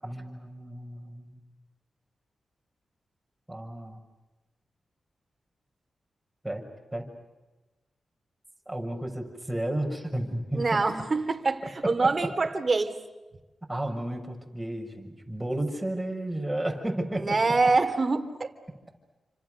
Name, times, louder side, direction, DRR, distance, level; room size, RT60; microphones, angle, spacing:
voice 1, 0.0-1.4 3.5-4.0 6.4-6.6 6.9-7.1 8.7-10.8 11.8-12.1 13.7-17.4, right 1 dB, 10° right, 2 dB, 6.5 m, -32 dB
voice 2, 10.5-12.9 17.2-18.5, right 3 dB, 40° right, 6 dB, 3.0 m, -25 dB
29.5 x 26.0 x 6.6 m, 1.1 s
cardioid pair, 70°, 0 cm